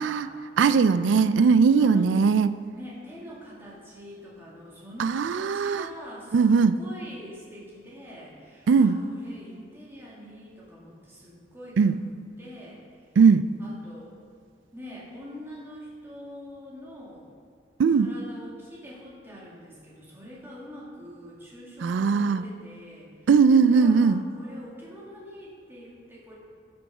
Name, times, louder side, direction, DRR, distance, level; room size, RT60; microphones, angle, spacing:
voice 1, 0.0-0.4 1.8-2.1 2.7-12.0 12.4-12.8 13.6-14.2 14.7-17.3 17.9-23.3 23.7-26.3, equal, 15° right, -6 dB, 2.2 m, -44 dB
voice 2, 0.6-2.6 5.0-5.9 6.3-6.7 8.7-9.0 11.8-12.0 13.2-13.5 17.8-18.1 21.8-22.4 23.3-24.2, right 5 dB, 80° right, 13 dB, 0.3 m, -19 dB
13.0 x 6.1 x 4.9 m, 2.1 s
head